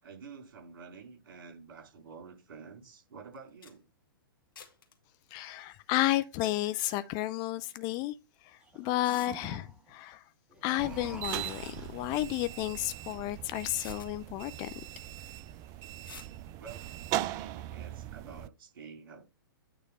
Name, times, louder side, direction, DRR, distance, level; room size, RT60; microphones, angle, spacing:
voice 1, 0.0-3.9 16.6-19.3, right 5 dB, 60° right, 4.0 m, -49 dB
sound 1, 3.3-3.4 3.6-3.7 4.6-4.9 6.6-7.0 8.3-8.4 9.0-9.3 11.1-11.6 13.1-13.2 13.7-14.1 16.0-16.3, left 7 dB, 65° left, 1.6 m, -49 dB
voice 2, 5.3-8.1 8.4-10.2 10.6-14.8, left 16 dB, 30° left, 0.5 m, -32 dB
sound 2, 8.6-10.0 10.5-12.1, right 3 dB, 10° right, 1.6 m, -48 dB
sound 3, 10.8-18.5, right 14 dB, 30° right, 0.4 m, -39 dB
9.0 x 3.2 x 5.3 m
figure-of-eight pair, 110°, 12 cm